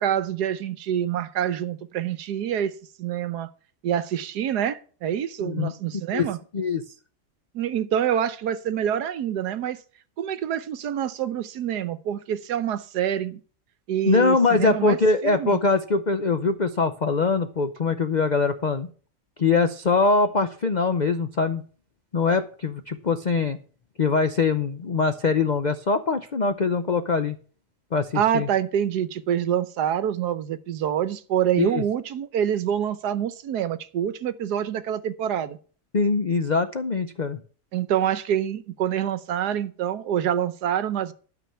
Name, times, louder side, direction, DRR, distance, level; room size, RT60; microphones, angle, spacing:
voice 1, 0.0-2.7 3.0-3.5 3.8-6.4 7.5-9.8 10.2-13.4 13.9-15.0 15.2-15.6 28.1-35.6 37.7-41.1, right 9 dB, 75° right, 14 dB, 1.3 m, -26 dB
voice 2, 14.1-18.9 19.4-21.6 22.1-23.6 24.0-27.4 27.9-28.5 31.6-31.8 35.9-37.4, left 4 dB, 70° left, 9 dB, 0.4 m, -23 dB
12.5 x 6.0 x 6.8 m, 0.42 s
omnidirectional pair, 1.8 m